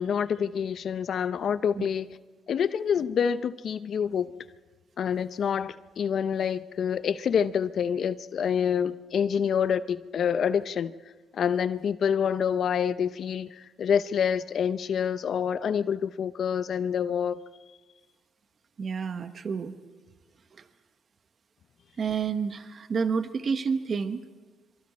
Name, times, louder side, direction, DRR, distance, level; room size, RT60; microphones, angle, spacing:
voice 1, 0.0-2.1 2.5-4.3 5.0-10.9 11.3-17.4, left 7 dB, 60° left, 0.6 m, -27 dB
voice 2, 18.8-19.7 22.0-24.2, right 5 dB, 45° right, 1.1 m, -29 dB
26.0 x 24.0 x 4.3 m
cardioid pair, 90°, 0 cm